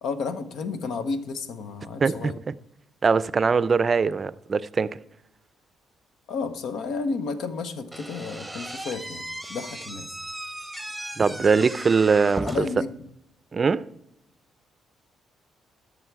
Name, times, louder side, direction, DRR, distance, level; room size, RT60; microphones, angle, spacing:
voice 1, 0.0-2.4 6.3-10.1 12.4-12.9, left 4 dB, 80° left, 0.9 m, -32 dB
voice 2, 2.0-2.5 3.0-5.0 11.2-12.7 13.5-13.9, right 5 dB, 35° right, 0.4 m, -22 dB
Slam / Squeak, 7.9-12.9, right 1 dB, 5° right, 0.9 m, -36 dB
12.5 x 6.2 x 4.7 m
cardioid pair, 90°, 0 cm